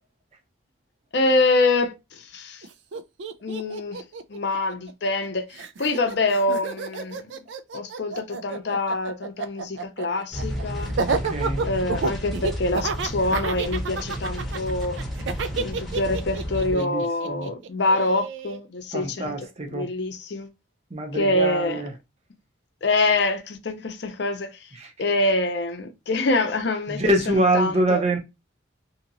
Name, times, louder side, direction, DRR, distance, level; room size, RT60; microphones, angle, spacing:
voice 1, 1.1-2.6 3.4-4.0 4.3-7.3 7.7-10.9 11.6-15.0 15.5-19.4 19.7-20.5 21.1-21.8 22.8-24.5 25.0-28.0, left 2 dB, 60° left, 0.6 m, -25 dB
Laughter, 2.6-2.7 2.9-5.3 5.5-18.6, right 4 dB, 70° right, 0.4 m, -30 dB
sound 1, 10.3-16.8, equal, ahead, 0.8 m, -32 dB
voice 2, 11.0-11.6 16.7-17.5 18.9-19.9 20.9-21.9 24.8-24.9 26.9-28.2, right 1 dB, 35° right, 0.7 m, -25 dB
2.8 x 2.8 x 2.6 m
head